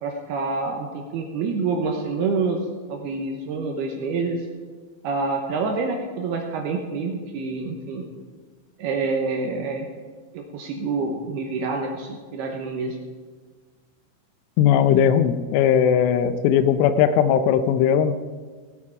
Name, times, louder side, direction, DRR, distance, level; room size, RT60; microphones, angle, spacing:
voice 1, 0.0-2.6 2.9-4.5 5.0-8.1 8.8-9.9 10.3-13.0, right 4 dB, 75° right, 2 dB, 2.5 m, -27 dB
voice 2, 14.6-18.1, left 8 dB, 85° left, 10 dB, 3.1 m, -18 dB
18.0 x 8.6 x 4.7 m, 1.5 s
omnidirectional pair, 5.7 m